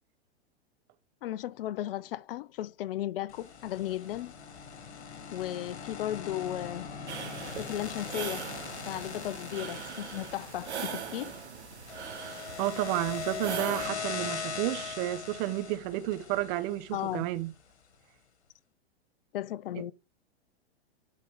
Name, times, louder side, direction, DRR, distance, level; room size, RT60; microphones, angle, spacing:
voice 1, 1.2-4.3 5.3-6.9 7.6-8.5 8.9-11.3 16.9-17.3 19.3-19.9, left 13 dB, 60° left, 0.5 m, -35 dB
sound 1, 3.3-17.5, left 6 dB, 80° left, 1.8 m, -41 dB
sound 2, 7.1-13.9, right 7 dB, 80° right, 1.8 m, -40 dB
voice 2, 12.6-17.5, right 15 dB, 45° right, 1.0 m, -31 dB
10.5 x 4.2 x 4.9 m
hypercardioid pair, 110°, 33 cm